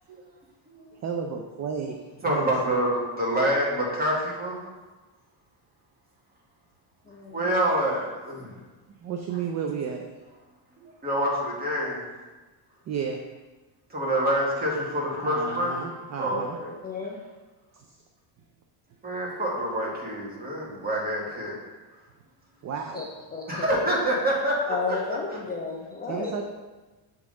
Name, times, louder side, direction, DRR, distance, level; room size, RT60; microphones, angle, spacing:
voice 1, 1.0-2.8 9.0-10.0 10.8-10.9 12.9-13.2 15.2-16.6 22.6-23.0 26.1-26.4, right 6 dB, 35° right, 3 dB, 0.4 m, -32 dB
voice 2, 2.2-4.6 7.3-8.6 11.0-12.1 13.9-15.8 16.2-16.7 19.0-21.6 23.5-25.4, equal, 20° right, -4 dB, 1.6 m, -27 dB
voice 3, 7.1-7.5 16.3-16.4 16.8-17.2 22.9-23.7 24.7-26.3, left 4 dB, 20° left, -2 dB, 0.5 m, -33 dB
7.2 x 3.7 x 3.8 m, 1.2 s
cardioid pair, 130°, 47 cm